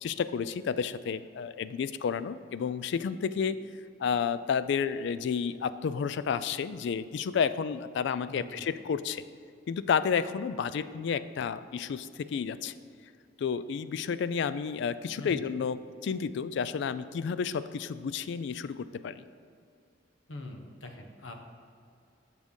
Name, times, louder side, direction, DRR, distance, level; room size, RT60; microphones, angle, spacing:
voice 1, 0.0-3.6 4.0-9.2 9.7-12.7 13.4-19.2, left 6 dB, 65° left, 15 dB, 0.3 m, -31 dB
voice 2, 8.3-8.7 15.2-15.4 20.3-21.3, left 2 dB, 90° left, 4 dB, 1.0 m, -43 dB
7.3 x 6.4 x 5.3 m, 2.4 s
head